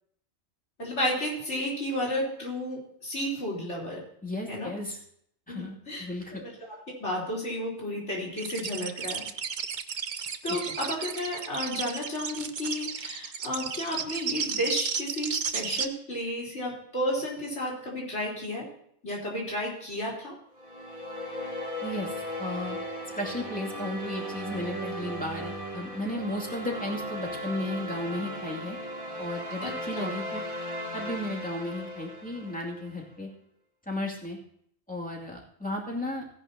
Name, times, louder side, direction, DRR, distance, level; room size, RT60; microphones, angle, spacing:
voice 1, 0.8-4.0 4.5-4.7 5.5-6.1 6.3-6.5 7.0-9.2 10.4-18.7 19.0-20.3 29.6-30.1, left 1 dB, 85° left, -4 dB, 4.2 m, -32 dB
voice 2, 4.2-5.0 5.5-6.4 10.5-10.7 21.8-22.8 23.2-28.8 29.2-30.4 30.9-33.3 33.9-34.4 34.9-36.2, left 1 dB, 5° left, -2 dB, 2.5 m, -34 dB
sound 1, 8.4-15.9, right 6 dB, 50° right, 0.8 m, -33 dB
sound 2, 20.6-33.0, equal, 25° right, 2.4 m, -37 dB
17.0 x 10.5 x 2.8 m, 0.68 s
omnidirectional pair, 1.2 m